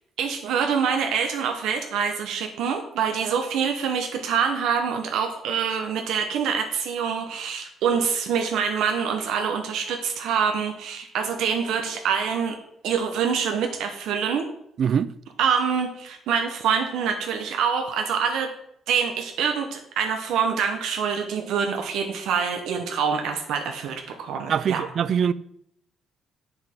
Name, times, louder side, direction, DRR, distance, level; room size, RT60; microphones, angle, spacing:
voice 1, 0.2-12.6 12.8-14.5 15.4-18.5 18.9-24.8, right 6 dB, 85° right, 1.1 m, -25 dB
voice 2, 14.8-15.1 24.5-25.3, right 8 dB, 45° right, 0.4 m, -22 dB
7.8 x 6.9 x 6.0 m
cardioid pair, 170°, 0 cm